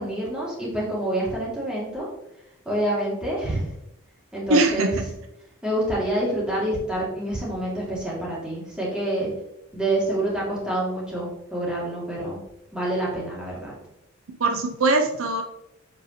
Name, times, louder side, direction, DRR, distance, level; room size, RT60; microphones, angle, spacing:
voice 1, 0.0-2.1 2.7-3.7 4.3-5.0 5.6-9.3 9.7-12.4 12.7-13.7, right 1 dB, 5° right, -6 dB, 2.5 m, -27 dB
voice 2, 4.5-5.1 14.3-15.4, right 2 dB, 70° right, 5 dB, 0.6 m, -22 dB
7.1 x 5.3 x 3.1 m, 0.84 s
head